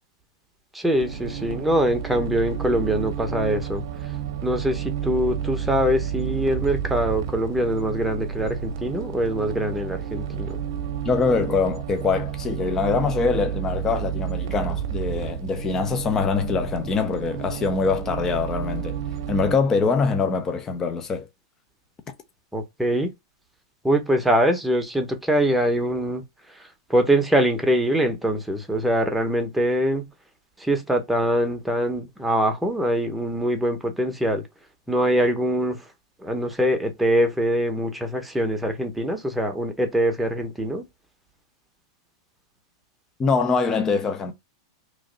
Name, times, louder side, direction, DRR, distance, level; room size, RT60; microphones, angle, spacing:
voice 1, 0.7-3.8 4.4-10.6 22.5-23.1 23.8-26.2 26.9-30.0 30.6-34.5 34.9-35.8 36.2-40.8, right 1 dB, 5° right, 0.9 m, -23 dB
sound 1, 0.9-19.6, right 9 dB, 65° right, 0.7 m, -31 dB
voice 2, 11.0-19.0 19.3-21.3 43.2-44.3, left 4 dB, 20° left, 0.6 m, -23 dB
3.1 x 2.6 x 3.8 m
hypercardioid pair, 125°, 2 cm